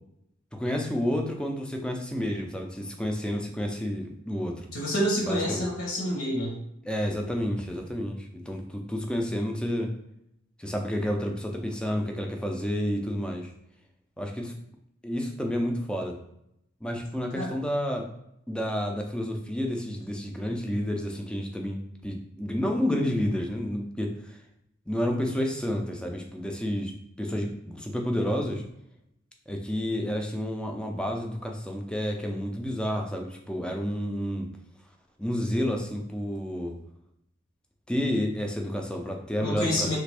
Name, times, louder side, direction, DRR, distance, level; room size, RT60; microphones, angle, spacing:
voice 1, 0.5-4.7 5.3-5.6 6.8-9.9 10.6-13.5 14.2-14.5 15.0-16.2 16.8-18.1 18.5-24.4 24.9-28.6 29.5-34.5 35.2-36.7 37.9-40.0, equal, 5° left, 2 dB, 0.4 m, -30 dB
voice 2, 4.7-6.5 17.3-17.5 39.4-40.0, equal, 75° left, -2 dB, 1.0 m, -28 dB
3.3 x 2.5 x 3.3 m, 0.79 s
head